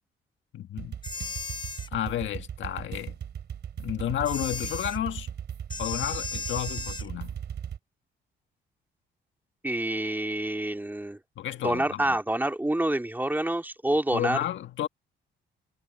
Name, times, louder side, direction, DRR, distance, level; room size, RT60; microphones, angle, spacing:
voice 1, 0.5-1.0 1.9-3.2 3.8-5.3 5.8-7.4 11.4-12.2 14.1-14.9, left 11 dB, 70° left, 1.9 m, -31 dB
sound 1, 0.8-7.8, right 8 dB, 60° right, 3.5 m, -37 dB
sound 2, 1.0-1.9 4.2-5.0 5.7-7.1, left 4 dB, 25° left, 1.5 m, -36 dB
voice 2, 9.6-11.2 11.6-14.4, right 1 dB, 10° right, 2.5 m, -27 dB
cardioid pair, 90°, 20 cm